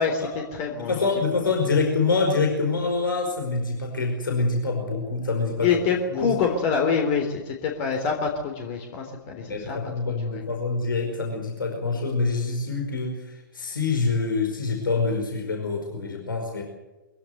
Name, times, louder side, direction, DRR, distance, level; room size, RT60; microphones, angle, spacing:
voice 1, 0.0-1.1 5.6-9.8 10.1-10.4, left 6 dB, 35° left, 3 dB, 3.6 m, -26 dB
voice 2, 0.9-5.7 6.1-6.3 9.5-16.6, left 4 dB, 75° left, 2 dB, 5.1 m, -26 dB
24.0 x 16.0 x 8.0 m, 1.1 s
figure-of-eight pair, 115°, 11 cm